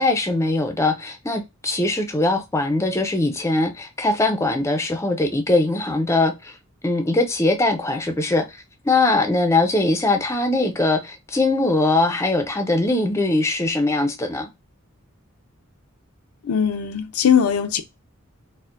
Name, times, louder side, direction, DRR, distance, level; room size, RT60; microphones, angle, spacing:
voice 1, 0.0-6.6 6.8-8.6 8.8-14.5, left 2 dB, 15° left, 0.4 m, -21 dB
voice 2, 16.4-17.8, left 8 dB, 85° left, 0.5 m, -20 dB
4.3 x 2.1 x 2.4 m
head